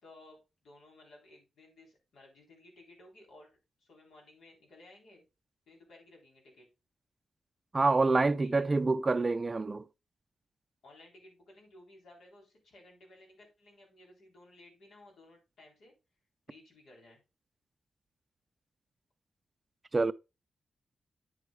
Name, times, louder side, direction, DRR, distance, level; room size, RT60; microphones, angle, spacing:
voice 1, 0.0-3.5 3.8-5.2 5.7-6.7 8.4-8.7 10.8-15.9 16.5-17.2, left 2 dB, 85° left, 3.8 m, -57 dB
voice 2, 7.7-9.8 19.9-20.1, right 3 dB, 25° right, 0.4 m, -27 dB
9.3 x 7.9 x 2.3 m
wide cardioid pair, 120°, 0 cm